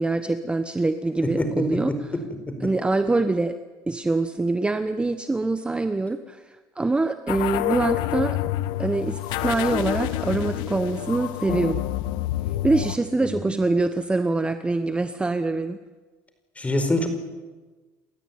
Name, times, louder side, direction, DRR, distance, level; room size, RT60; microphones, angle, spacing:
voice 1, 0.0-2.1 2.6-3.5 3.9-6.4 6.8-8.4 8.8-11.8 12.6-15.8, right 2 dB, 15° right, 10 dB, 1.1 m, -24 dB
voice 2, 1.2-2.0 2.5-2.7 13.2-13.5 16.6-17.1, left 1 dB, 15° left, 8 dB, 4.9 m, -26 dB
sound 1, 7.3-13.0, left 14 dB, 75° left, 1.1 m, -27 dB
29.5 x 13.0 x 9.7 m, 1.3 s
supercardioid pair, 95°, 8 cm